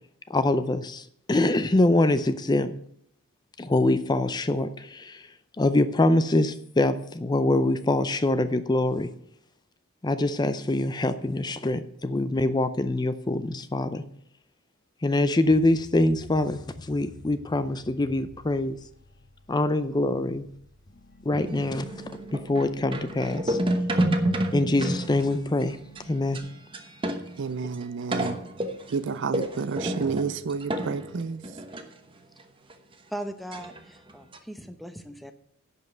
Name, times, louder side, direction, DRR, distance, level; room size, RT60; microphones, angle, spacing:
voice 1, 0.3-2.7 3.6-5.3 5.6-9.1 10.0-14.0 15.0-18.8 19.5-20.5 21.3-21.9 22.3-23.6 24.5-25.8 26.1-26.4, left 2 dB, 20° left, 0.4 m, -24 dB
sound 1, 15.5-26.4, left 2 dB, 40° left, 1.1 m, -51 dB
sound 2, 21.3-27.5 27.7-27.8 28.1-31.8 32.4-32.5 32.7-32.8 33.5-33.8 34.1-34.4, right 1 dB, 25° right, 1.0 m, -30 dB
voice 2, 27.4-28.4 28.9-31.4, right 5 dB, 55° right, 0.4 m, -30 dB
voice 3, 33.1-35.3, right 1 dB, ahead, 0.8 m, -38 dB
11.0 x 5.4 x 7.7 m
head